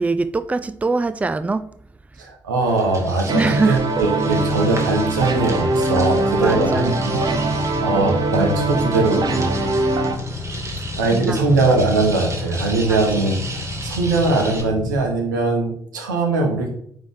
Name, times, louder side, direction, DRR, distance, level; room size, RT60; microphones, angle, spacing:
voice 1, 0.0-1.7 3.3-3.8 6.4-6.9 11.1-11.4 12.9-13.0, right 3 dB, 15° right, 0.4 m, -22 dB
voice 2, 2.2-7.3 7.8-9.5 11.0-16.7, right 3 dB, 85° right, 1.0 m, -21 dB
sound 1, 2.6-14.6, right 2 dB, 30° right, 1.7 m, -35 dB
sound 2, 3.3-10.2, right 2 dB, 45° right, 0.9 m, -22 dB
Motorcycle / Idling, 4.3-15.0, left 3 dB, 50° left, 0.9 m, -31 dB
9.0 x 3.2 x 3.6 m
hypercardioid pair, 40°, 10 cm